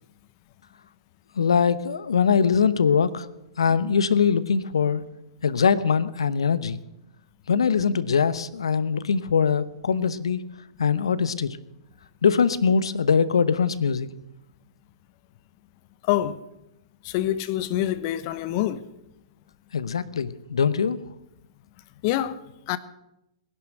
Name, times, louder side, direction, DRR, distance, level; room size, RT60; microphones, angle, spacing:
voice 1, 1.4-3.3 3.6-5.0 5.4-6.8 7.5-10.4 10.8-11.6 12.2-14.1 19.7-21.0, left 6 dB, 70° left, 1.0 m, -22 dB
voice 2, 16.0-16.4 17.0-18.8 22.0-22.4 22.7-22.8, left 13 dB, 45° left, 0.9 m, -25 dB
19.5 x 11.0 x 6.6 m
figure-of-eight pair, 110°, 3 cm